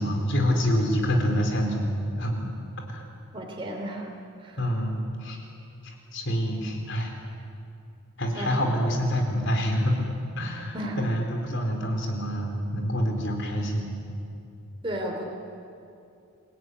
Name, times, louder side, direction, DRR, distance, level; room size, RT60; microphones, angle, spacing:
voice 1, 0.0-2.5 2.9-3.0 4.6-5.4 5.8-7.1 8.2-10.1 10.4-13.9, equal, 55° left, 3 dB, 4.2 m, -26 dB
voice 2, 3.3-4.1 4.4-4.6 8.3-8.5 10.7-11.0 14.8-15.2, right 1 dB, 25° right, 0 dB, 3.2 m, -33 dB
27.0 x 17.0 x 9.8 m, 2.6 s
head